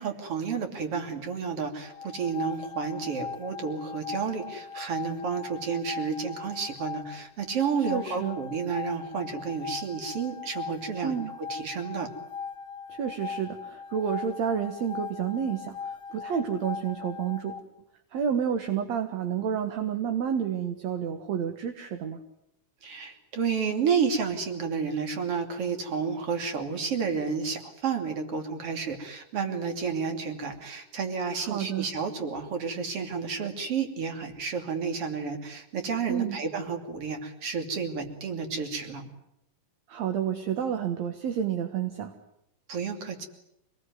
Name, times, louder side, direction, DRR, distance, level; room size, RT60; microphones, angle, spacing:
voice 1, 0.0-12.1 22.8-39.0 42.7-43.2, right 6 dB, 40° right, 6 dB, 3.5 m, -31 dB
sound 1, 1.8-17.6, left 6 dB, 65° left, 1.6 m, -39 dB
voice 2, 7.9-8.4 11.0-11.3 12.9-17.5 18.1-22.2 31.4-31.9 36.1-36.4 39.9-42.1, right 8 dB, 55° right, 6 dB, 2.4 m, -30 dB
26.0 x 20.0 x 9.4 m, 0.80 s
omnidirectional pair, 4.2 m